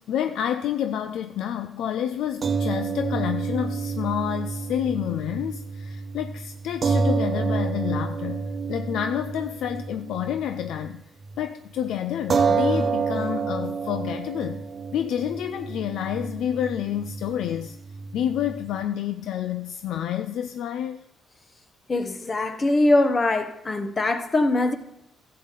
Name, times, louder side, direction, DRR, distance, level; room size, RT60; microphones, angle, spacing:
voice 1, 0.0-11.0 11.4-14.6 14.9-17.8 18.1-21.0, left 10 dB, 80° left, 0.4 m, -29 dB
sound 1, 2.4-10.9 11.2-11.4 12.3-18.8, right 5 dB, 45° right, 0.8 m, -28 dB
voice 2, 21.9-24.7, left 2 dB, 35° left, 1.1 m, -22 dB
12.5 x 7.7 x 4.0 m
cardioid pair, 90°, 0 cm